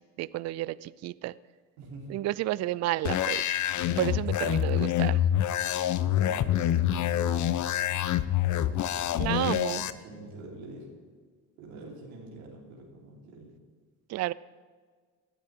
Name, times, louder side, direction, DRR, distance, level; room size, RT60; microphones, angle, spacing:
voice 1, 0.2-1.3 2.1-3.4 4.0-5.2 9.2-9.9 14.1-14.3, right 16 dB, 40° right, 20 dB, 0.4 m, -31 dB
voice 2, 1.8-2.2 3.7-4.6 6.0-7.6 8.4-8.9 9.8-10.9 11.6-13.5, right 2 dB, 85° right, -5 dB, 3.9 m, -46 dB
sound 1, 3.0-9.9, left 11 dB, 45° left, 0.7 m, -26 dB
18.5 x 12.0 x 3.7 m, 1.5 s
hypercardioid pair, 70°, 40 cm